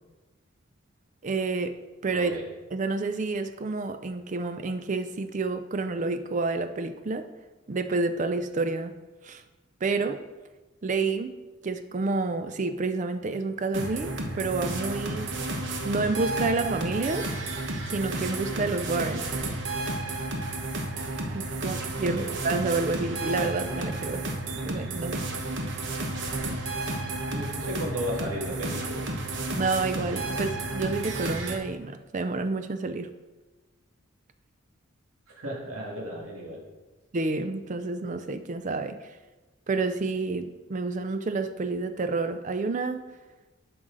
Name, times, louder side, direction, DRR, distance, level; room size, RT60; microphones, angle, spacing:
voice 1, 1.2-2.3 2.7-7.2 7.7-8.9 9.2-9.4 9.8-10.2 10.8-11.3 11.6-15.3 15.8-17.3 17.9-19.3 21.3-24.2 24.6-25.3 29.5-33.1 37.1-39.0 39.7-43.0, right 3 dB, 35° right, 9 dB, 0.4 m, -29 dB
sound 1, 13.7-31.6, right 2 dB, 60° right, 1.1 m, -32 dB
voice 2, 22.0-22.3 27.3-29.0 35.3-36.6, equal, 80° right, -3 dB, 2.1 m, -34 dB
11.0 x 6.2 x 3.9 m, 1.2 s
head